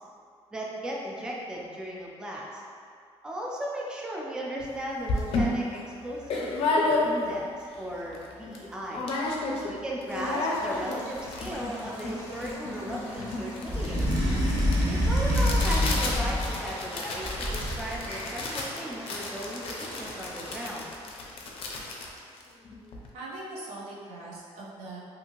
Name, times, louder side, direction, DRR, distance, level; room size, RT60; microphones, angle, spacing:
voice 1, 0.5-2.6 3.2-9.1 9.6-14.1 14.9-20.9, right 1 dB, 5° right, -3 dB, 0.4 m, -36 dB
sound 1, 4.6-4.7 5.1-7.5 7.9-8.0 8.1-8.6 8.9-9.7 10.0-23.1, left 2 dB, 55° left, 0.5 m, -32 dB
sound 2, 10.1-20.5, equal, 20° left, 0.7 m, -44 dB
sound 3, 13.6-16.7 17.2-18.1, equal, 40° right, 0.8 m, -26 dB
voice 2, 23.1-25.0, right 2 dB, 90° right, -5 dB, 0.7 m, -41 dB
2.7 x 2.5 x 2.9 m, 2.3 s
cardioid pair, 135°, 11 cm